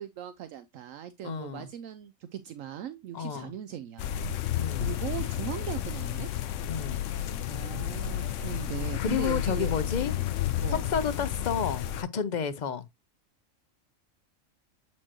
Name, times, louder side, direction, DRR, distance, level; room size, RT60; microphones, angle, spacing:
voice 1, 0.0-4.1 4.8-6.3 7.5-10.1 10.6-10.8, right 10 dB, 75° right, 0.9 m, -39 dB
voice 2, 1.2-1.7 3.1-3.5 4.6-4.9 6.7-7.1 9.0-10.1 10.7-12.9, left 7 dB, 55° left, 0.5 m, -31 dB
sound 1, 4.0-12.0, left 11 dB, 70° left, 0.9 m, -31 dB
7.6 x 4.5 x 2.8 m
omnidirectional pair, 1.4 m